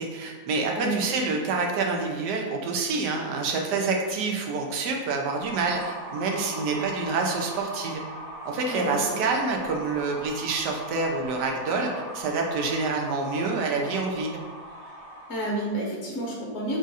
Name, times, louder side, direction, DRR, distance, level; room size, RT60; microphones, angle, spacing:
voice 1, 0.0-8.0 8.4-14.4, right 3 dB, 90° right, 1 dB, 1.2 m, -27 dB
sound 1, 5.3-15.7, right 1 dB, 45° right, 0.5 m, -40 dB
voice 2, 8.7-9.2 15.3-16.8, right 1 dB, 55° left, -3 dB, 0.9 m, -30 dB
3.8 x 2.4 x 4.0 m, 1.4 s
omnidirectional pair, 1.7 m